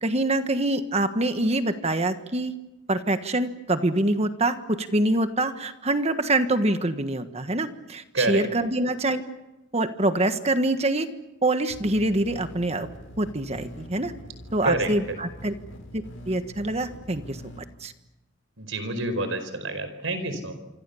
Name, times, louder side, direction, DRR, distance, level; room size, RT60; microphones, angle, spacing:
voice 1, 0.0-2.5 2.9-9.2 9.7-11.1 11.4-12.9 13.2-14.1 14.5-15.5 15.9-17.9, right 2 dB, 30° right, 9 dB, 1.5 m, -25 dB
sound 1, 11.7-17.6, equal, 80° left, 5.9 m, -44 dB
voice 2, 18.6-20.5, right 2 dB, 75° right, 10 dB, 4.9 m, -27 dB
27.0 x 25.5 x 7.1 m, 0.99 s
head